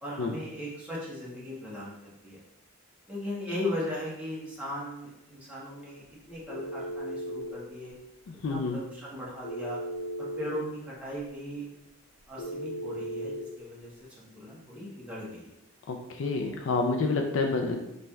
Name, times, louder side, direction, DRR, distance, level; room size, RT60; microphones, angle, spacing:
voice 1, 0.0-2.4 3.1-7.9 8.5-9.8 10.2-11.7 12.3-15.5, left 1 dB, 5° right, -8 dB, 0.9 m, -38 dB
Telephone, 6.5-7.5 9.4-10.5 12.4-13.4, right 1 dB, 85° left, 0.9 m, -36 dB
voice 2, 8.4-8.8 15.9-17.9, left 3 dB, 60° left, 4 dB, 0.3 m, -28 dB
4.0 x 3.1 x 2.3 m, 0.91 s
head